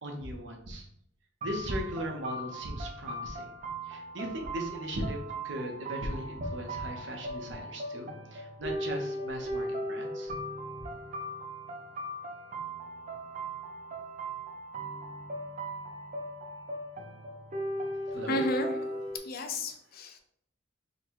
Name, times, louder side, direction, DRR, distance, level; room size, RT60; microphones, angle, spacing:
voice 1, 0.0-0.9 1.4-3.5 3.9-10.3 10.8-10.9 18.1-18.4, right 1 dB, 75° right, 2 dB, 0.9 m, -38 dB
sound 1, 1.4-19.2, right 1 dB, 45° right, 0.6 m, -38 dB
voice 2, 18.3-18.9 19.1-20.2, left 1 dB, 55° left, 5 dB, 0.6 m, -32 dB
3.9 x 2.3 x 4.6 m, 0.71 s
head